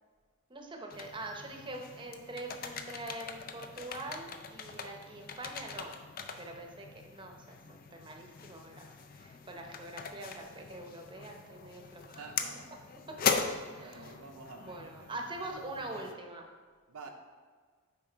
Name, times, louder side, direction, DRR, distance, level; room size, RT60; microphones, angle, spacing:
voice 1, 0.5-5.9 6.4-8.9 9.2-12.2 13.1-13.2 13.7-14.1 14.6-16.5, right 2 dB, 20° right, 2 dB, 0.8 m, -44 dB
sound 1, 0.9-16.1, left 6 dB, 40° left, 0.4 m, -40 dB
voice 2, 12.0-12.7 13.8-15.3 16.9-17.1, right 4 dB, 65° right, 2 dB, 0.6 m, -50 dB
8.8 x 3.6 x 4.5 m, 1.5 s
head